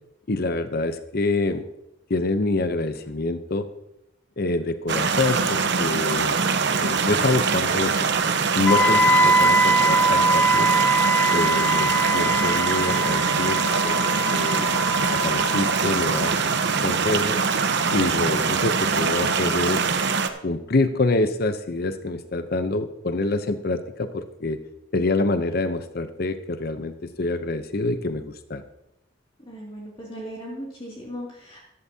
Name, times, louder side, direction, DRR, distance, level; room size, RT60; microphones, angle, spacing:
voice 1, 0.3-1.7 2.1-3.7 4.4-6.4 6.8-8.0 8.5-10.7 11.3-14.0 14.3-14.7 15.1-16.4 16.8-17.4 17.9-19.8 20.4-24.6 24.9-28.6, left 2 dB, 55° left, 10 dB, 0.7 m, -26 dB
sound 1, 4.9-20.3, right 5 dB, 65° right, 0.9 m, -23 dB
Wind instrument woodwind instrument, 8.7-16.6, right 1 dB, 5° left, 0.4 m, -22 dB
voice 2, 29.5-31.6, equal, 30° left, -4 dB, 2.5 m, -37 dB
14.5 x 11.5 x 2.8 m, 0.86 s
head